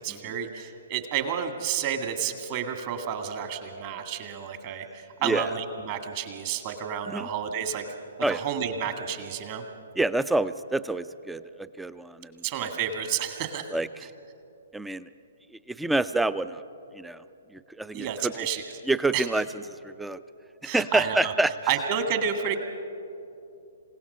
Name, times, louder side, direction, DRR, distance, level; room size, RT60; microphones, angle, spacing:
voice 1, 0.0-7.8 8.3-9.6 12.4-13.7 17.9-18.6 19.1-19.3 20.6-21.3 21.7-22.6, right 8 dB, 40° right, 6 dB, 2.0 m, -30 dB
voice 2, 10.0-12.4 13.7-13.9 14.7-15.1 15.7-16.6 16.9-17.2 17.5-18.3 18.9-19.5 19.8-20.2 20.6-21.5, right 2 dB, 5° right, 15 dB, 0.5 m, -27 dB
27.5 x 17.0 x 5.6 m, 2.8 s
figure-of-eight pair, 125°, 0 cm